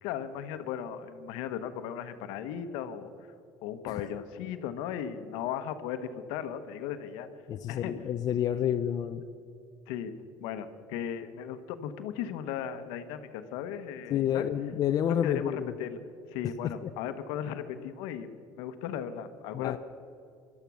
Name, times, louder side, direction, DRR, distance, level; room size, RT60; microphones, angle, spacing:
voice 1, 0.0-3.1 3.6-7.3 7.7-7.9 9.9-10.1 10.4-14.4 15.2-16.0 16.3-19.8, left 9 dB, 80° left, 10 dB, 1.1 m, -36 dB
voice 2, 7.5-9.2 14.1-15.7 16.6-16.7 19.5-19.8, left 10 dB, 50° left, 8 dB, 0.6 m, -29 dB
18.0 x 12.5 x 6.2 m, 2.4 s
supercardioid pair, 95°, 8 cm